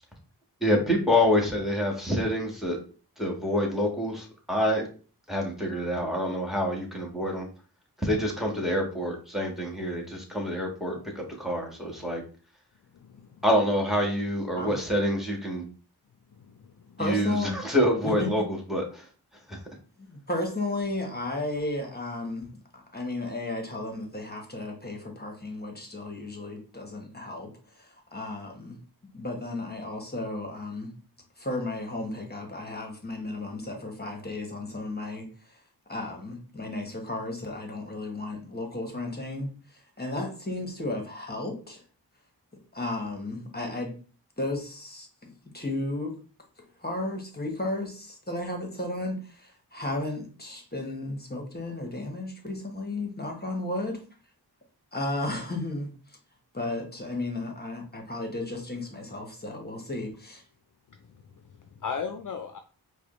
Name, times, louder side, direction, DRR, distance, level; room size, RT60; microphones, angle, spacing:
voice 1, 0.6-2.8 3.2-4.8 5.3-7.5 8.0-12.2 13.4-15.6 17.0-19.1 19.5-19.6, equal, ahead, 0 dB, 1.5 m, -27 dB
voice 2, 12.9-13.4 16.3-17.0 60.9-62.6, left 6 dB, 50° left, 6 dB, 0.5 m, -38 dB
voice 3, 17.0-17.5 18.0-18.3 20.0-28.8 29.1-30.9 31.4-35.6 35.9-41.8 42.7-44.0 44.4-46.1 46.6-54.0 54.9-56.2 56.5-60.4, left 2 dB, 25° left, 2 dB, 1.1 m, -34 dB
4.8 x 2.2 x 3.1 m, 0.37 s
cardioid pair, 45°, 40 cm